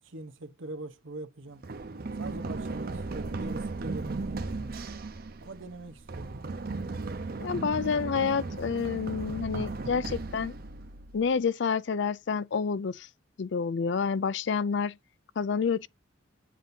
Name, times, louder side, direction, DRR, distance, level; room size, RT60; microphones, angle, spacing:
voice 1, 0.0-1.6 2.2-4.7 5.4-6.4, right 2 dB, 90° right, 1.0 m, -42 dB
Run, 1.6-11.4, right 3 dB, 50° right, 0.7 m, -36 dB
voice 2, 7.4-10.5 11.1-13.1 13.4-15.0 15.4-15.9, left 5 dB, 65° left, 0.4 m, -28 dB
7.6 x 2.7 x 5.3 m
head